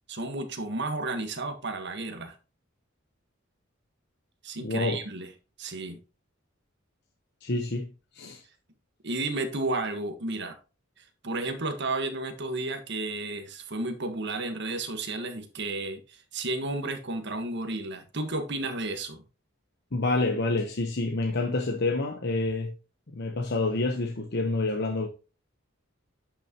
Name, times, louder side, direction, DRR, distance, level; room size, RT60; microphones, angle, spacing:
voice 1, 0.1-2.3 4.4-5.3 5.6-6.0 9.0-10.5 11.0-19.2, right 2 dB, 60° right, 1.5 m, -32 dB
voice 2, 4.6-5.0 7.4-7.9 8.1-8.4 19.9-22.7 23.1-25.1, left 2 dB, 60° left, 1.0 m, -28 dB
10.0 x 6.2 x 3.0 m
head